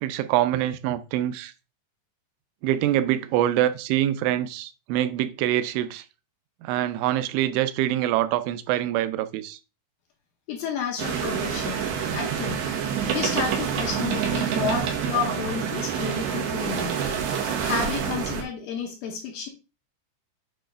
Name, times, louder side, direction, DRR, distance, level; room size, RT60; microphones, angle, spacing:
voice 1, 0.0-1.5 2.6-6.0 6.6-9.6, right 12 dB, 90° right, 3.1 m, -25 dB
voice 2, 10.5-11.9 12.1-12.7 13.1-16.9 17.6-19.5, left 6 dB, 75° left, 2.2 m, -31 dB
sound 1, 11.0-18.4, right 7 dB, 65° right, 2.9 m, -27 dB
8.9 x 3.3 x 5.1 m
omnidirectional pair, 5.3 m